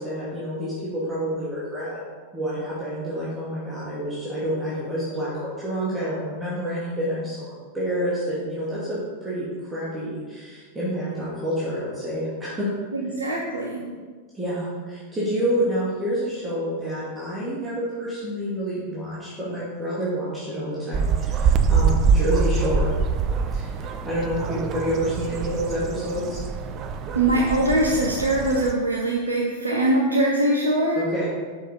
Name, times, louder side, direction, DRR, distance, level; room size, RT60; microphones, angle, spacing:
voice 1, 0.0-2.0 2.3-12.7 14.3-22.9 23.5-26.4 30.9-31.3, equal, 15° right, -9 dB, 2.3 m, -28 dB
voice 2, 12.9-13.8 27.1-31.1, right 1 dB, 80° right, -2 dB, 0.9 m, -22 dB
sound 1, 20.9-28.7, right 5 dB, 35° right, 0.6 m, -24 dB
7.0 x 6.3 x 5.3 m, 1.5 s
figure-of-eight pair, 90°, 0 cm